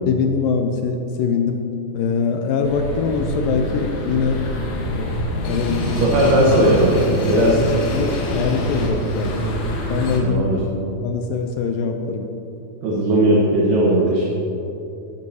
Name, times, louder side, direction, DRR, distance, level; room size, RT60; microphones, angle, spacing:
voice 1, 0.1-1.6 1.9-4.5 4.9-6.0 6.7-6.8 7.9-9.4 9.9-10.4 11.0-12.3, left 5 dB, 85° left, 4 dB, 2.1 m, -23 dB
sound 1, 2.6-10.2, equal, 65° left, 2.6 m, -25 dB
voice 2, 5.9-7.0 7.3-7.7 10.2-10.6 12.8-14.3, right 1 dB, 65° right, -4 dB, 2.4 m, -17 dB
13.5 x 11.0 x 2.8 m, 2.8 s
omnidirectional pair, 4.6 m